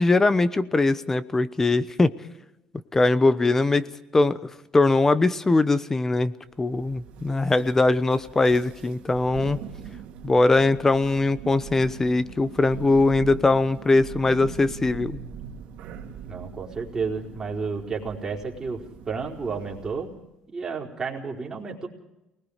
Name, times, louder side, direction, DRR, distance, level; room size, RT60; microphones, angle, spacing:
voice 1, 0.0-2.1 2.9-3.9 4.1-4.4 4.7-6.3 6.6-9.6 10.2-15.2, left 3 dB, 15° left, 14 dB, 1.0 m, -21 dB
Thunder, 6.5-20.2, right 8 dB, 75° right, 2.5 m, -41 dB
voice 2, 16.2-20.1 20.5-21.9, right 5 dB, 25° right, -1 dB, 4.2 m, -31 dB
29.0 x 20.0 x 5.0 m, 0.93 s
cardioid pair, 120°, 2 cm